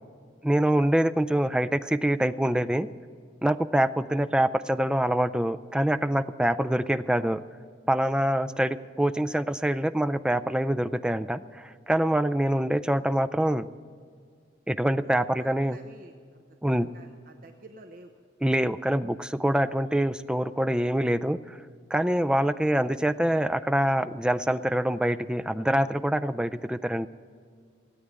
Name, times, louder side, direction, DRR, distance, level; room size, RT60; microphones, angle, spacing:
voice 1, 0.4-2.9 3.4-7.4 7.9-13.7 14.7-15.8 16.6-16.9 18.4-21.6 21.9-27.1, right 1 dB, 5° right, 12 dB, 0.3 m, -25 dB
voice 2, 15.4-18.1 22.6-22.8, right 2 dB, 50° right, 5 dB, 0.9 m, -51 dB
16.5 x 8.7 x 8.0 m, 2.1 s
head